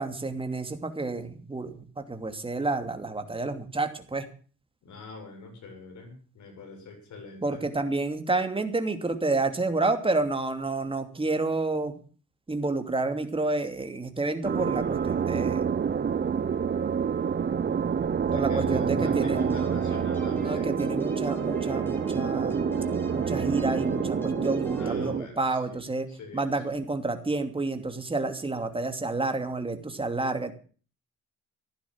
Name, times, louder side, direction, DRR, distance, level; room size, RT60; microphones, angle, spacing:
voice 1, 0.0-4.3 7.4-12.0 12.5-15.7 18.3-19.4 20.3-22.6 23.1-26.1 26.3-30.5, right 3 dB, 20° right, 7 dB, 2.8 m, -29 dB
voice 2, 4.8-7.7 18.2-20.8 24.7-25.8 26.1-26.6, left 3 dB, 70° left, 4 dB, 7.7 m, -43 dB
sound 1, 14.4-25.2, right 7 dB, 35° right, 0.8 m, -27 dB
sound 2, 19.3-24.9, left 2 dB, 5° left, 6.5 m, -40 dB
15.0 x 11.5 x 7.4 m, 0.41 s
cardioid pair, 90°, 30 cm